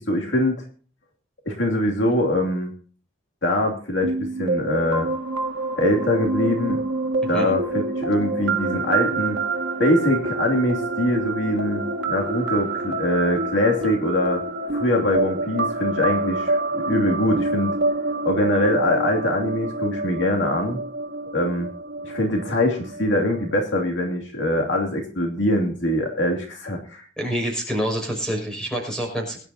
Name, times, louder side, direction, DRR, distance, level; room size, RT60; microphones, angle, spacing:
voice 1, 0.1-0.6 1.5-2.7 3.4-5.1 5.8-6.8 7.3-9.4 9.8-14.4 14.7-17.8 18.2-20.8 21.3-21.7 22.0-27.1, left 1 dB, 60° left, 1 dB, 2.8 m, -23 dB
sound 1, 4.0-23.6, right 3 dB, 60° right, 1.9 m, -27 dB
voice 2, 27.2-29.4, equal, 5° left, 1 dB, 5.8 m, -27 dB
23.0 x 11.0 x 2.8 m, 0.43 s
head